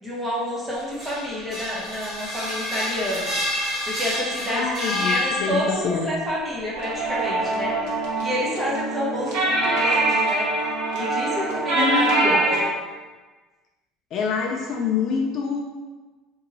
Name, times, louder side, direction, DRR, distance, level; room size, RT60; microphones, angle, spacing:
voice 1, 0.0-3.3 3.9-4.7 5.0-7.8 8.2-10.5 10.9-12.7, left 1 dB, 10° right, -6 dB, 0.7 m, -29 dB
sound 1, 0.8-5.9, left 1 dB, 30° right, 1.5 m, -28 dB
voice 2, 4.5-6.1 11.7-12.4 14.1-15.6, left 5 dB, 35° left, 1 dB, 0.3 m, -26 dB
sound 2, 6.7-12.6, right 2 dB, 90° right, 1.0 m, -23 dB
2.8 x 2.6 x 3.9 m, 1.3 s
cardioid pair, 170°, 0 cm